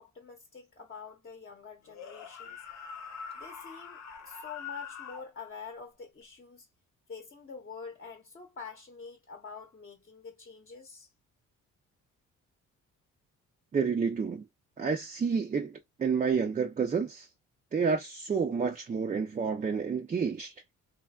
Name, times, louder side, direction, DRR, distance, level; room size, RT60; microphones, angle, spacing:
voice 1, 0.0-2.6 3.3-6.7 7.1-11.1, left 5 dB, 30° left, 0.8 m, -46 dB
sound 1, 1.9-5.3, left 6 dB, 65° left, 0.9 m, -44 dB
voice 2, 13.7-14.4 14.8-17.3 17.7-20.5, right 5 dB, 25° right, 0.4 m, -29 dB
3.2 x 2.2 x 2.3 m
cardioid pair, 90°, 30 cm